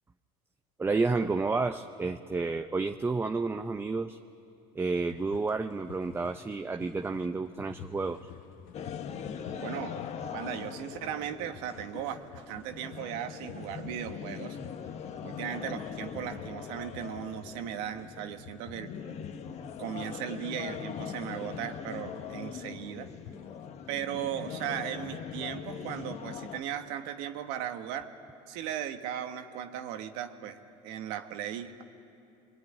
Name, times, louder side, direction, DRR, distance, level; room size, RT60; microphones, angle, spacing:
voice 1, 0.8-4.2 4.7-8.3, right 3 dB, 15° right, 7 dB, 0.7 m, -30 dB
sound 1, 4.8-23.7, left 10 dB, 65° left, 0.8 m, -52 dB
sound 2, 8.7-26.6, left 7 dB, 45° left, 1.4 m, -41 dB
voice 2, 9.6-10.1 10.3-14.6 15.2-18.9 19.8-23.1 23.9-28.1 28.5-31.8, right 10 dB, 80° right, 7 dB, 1.6 m, -37 dB
25.5 x 22.0 x 10.0 m, 2.7 s
supercardioid pair, 110°, 15 cm